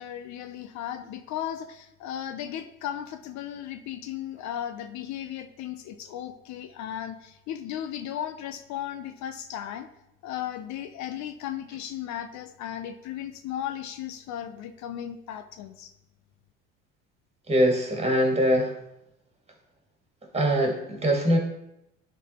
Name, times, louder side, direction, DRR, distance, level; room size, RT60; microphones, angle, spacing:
voice 1, 0.0-9.9 10.2-15.9, left 10 dB, 60° left, 9 dB, 0.7 m, -36 dB
voice 2, 17.5-18.7 20.3-21.4, equal, 20° right, 1 dB, 2.2 m, -22 dB
11.0 x 3.8 x 4.3 m, 0.85 s
supercardioid pair, 85°, 32 cm